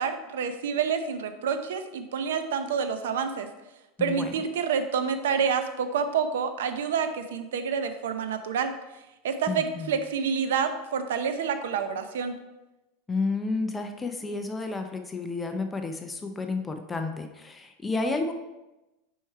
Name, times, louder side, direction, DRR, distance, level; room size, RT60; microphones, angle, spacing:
voice 1, 0.0-3.5 4.0-8.7 9.2-12.4, right 6 dB, 90° right, 9 dB, 0.6 m, -28 dB
voice 2, 4.0-4.3 9.5-9.9 13.1-18.3, left 3 dB, 10° left, 5 dB, 0.5 m, -31 dB
4.6 x 4.4 x 4.6 m, 1.0 s
supercardioid pair, 135°, 0 cm